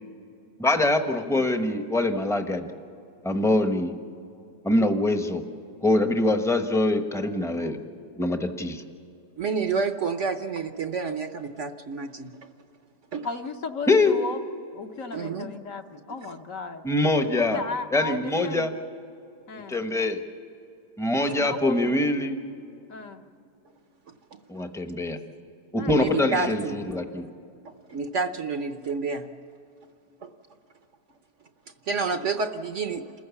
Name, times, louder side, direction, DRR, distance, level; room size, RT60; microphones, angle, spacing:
voice 1, 0.6-2.7 3.2-3.9 4.6-5.4 5.8-7.8 8.2-8.8 13.9-14.2 16.8-17.6 17.9-18.7 19.7-20.2 21.0-22.4 24.5-25.2 25.7-27.2, left 2 dB, ahead, 6 dB, 0.8 m, -24 dB
voice 2, 9.4-12.3 13.1-13.3 15.1-15.5 21.2-21.3 24.3-24.4 25.9-26.8 27.9-29.3 30.2-30.3 31.8-33.1, right 4 dB, 55° right, 8 dB, 1.0 m, -29 dB
voice 3, 13.2-14.4 14.7-16.8 17.3-18.8 19.5-19.8 21.3-22.0 22.9-23.2 25.0-25.2 25.8-26.7, left 4 dB, 55° left, 5 dB, 1.3 m, -35 dB
27.5 x 15.0 x 7.1 m, 2.6 s
omnidirectional pair, 1.7 m